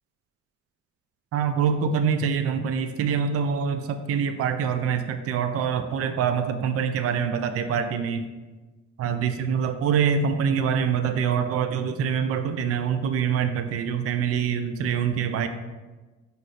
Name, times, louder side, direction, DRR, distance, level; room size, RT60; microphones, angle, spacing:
voice 1, 1.3-8.3 9.0-15.5, right 7 dB, 50° right, 8 dB, 0.4 m, -25 dB
4.8 x 2.6 x 4.1 m, 1.3 s
cardioid pair, 90°, 30 cm